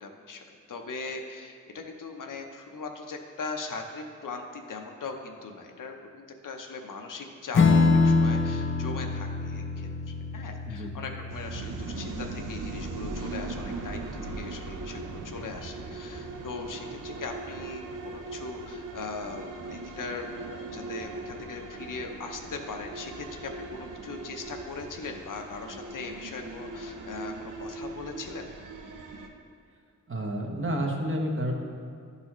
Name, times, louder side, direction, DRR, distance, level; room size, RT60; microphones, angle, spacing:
voice 1, 0.0-28.4, left 4 dB, 75° left, 3 dB, 0.7 m, -40 dB
Strum, 7.5-14.4, left 4 dB, 40° left, 0.4 m, -26 dB
sound 1, 11.3-29.3, right 3 dB, 80° right, 0.6 m, -39 dB
voice 2, 30.1-31.5, equal, 40° right, 0 dB, 0.9 m, -30 dB
11.0 x 4.0 x 3.0 m, 2.2 s
wide cardioid pair, 80°, 32 cm